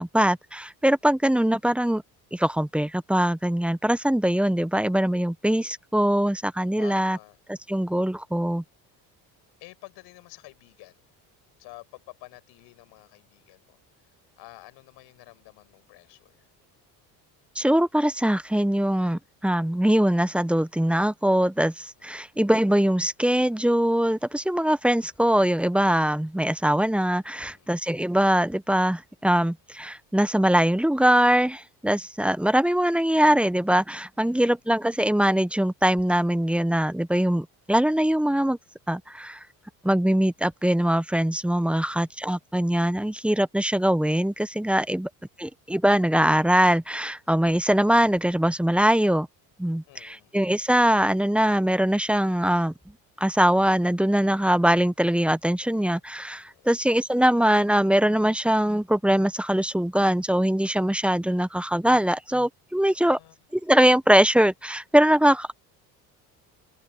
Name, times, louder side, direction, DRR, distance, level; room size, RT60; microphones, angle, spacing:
voice 1, 0.0-2.0 2.3-7.2 7.5-8.6 17.6-38.6 38.9-39.4 39.8-45.1 45.4-49.3 49.6-52.7 53.2-63.2 63.5-65.5, right 1 dB, 5° right, 0.6 m, -22 dB
voice 2, 6.8-7.4 9.6-11.0 11.6-16.5 22.0-22.1 27.3-27.7 34.2-34.6 41.7-42.1 44.8-45.0 49.9-50.4 56.5-56.7 62.9-63.4, left 20 dB, 85° left, 6.0 m, -50 dB
cardioid pair, 100°, 39 cm